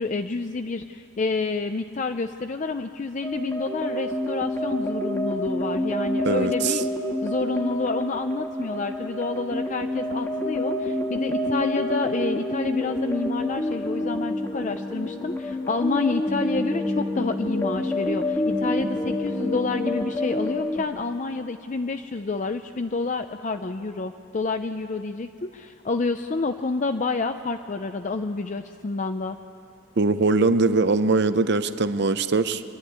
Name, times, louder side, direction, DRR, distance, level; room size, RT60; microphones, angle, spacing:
voice 1, 0.0-6.9 7.2-29.4, left 3 dB, 35° left, 8 dB, 0.4 m, -29 dB
sound 1, 3.2-20.8, left 1 dB, 10° left, 1.4 m, -28 dB
voice 2, 6.2-6.8 30.0-32.6, right 3 dB, 55° right, 12 dB, 0.7 m, -21 dB
23.5 x 12.0 x 9.5 m, 2.5 s
head